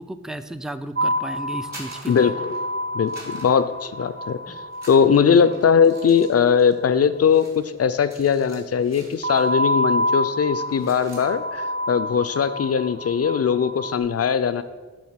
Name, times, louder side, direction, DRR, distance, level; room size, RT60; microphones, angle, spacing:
voice 1, 0.0-2.3 4.5-4.6 5.4-5.5, right 1 dB, ahead, 11 dB, 0.4 m, -34 dB
sound 1, 1.0-6.3 9.2-14.0, equal, 40° right, 0.7 m, -28 dB
sound 2, 1.5-2.7 3.1-4.3 4.7-9.6 9.9-10.2 10.5-11.3, right 1 dB, 65° right, 2.1 m, -46 dB
voice 2, 2.9-4.6 4.9-14.6, left 7 dB, 55° left, 13 dB, 0.4 m, -20 dB
7.7 x 3.5 x 5.7 m, 1.3 s
cardioid pair, 45°, 29 cm